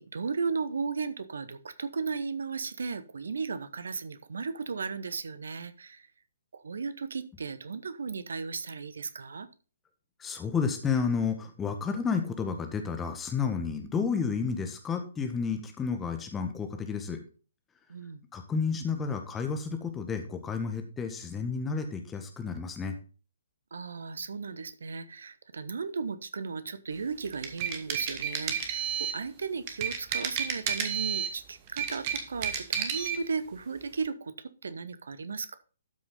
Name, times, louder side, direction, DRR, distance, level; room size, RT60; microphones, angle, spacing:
voice 1, 0.0-6.0 6.5-9.5 17.9-18.2 23.7-28.8 29.1-35.6, right 5 dB, 60° right, 14 dB, 1.0 m, -35 dB
voice 2, 10.2-17.2 18.3-22.9, left 5 dB, 10° left, 5 dB, 1.5 m, -31 dB
sound 1, 27.2-29.2 29.7-31.3 31.7-33.2, right 8 dB, 30° right, 1.6 m, -31 dB
12.5 x 6.2 x 3.9 m, 0.37 s
figure-of-eight pair, 125°, 0 cm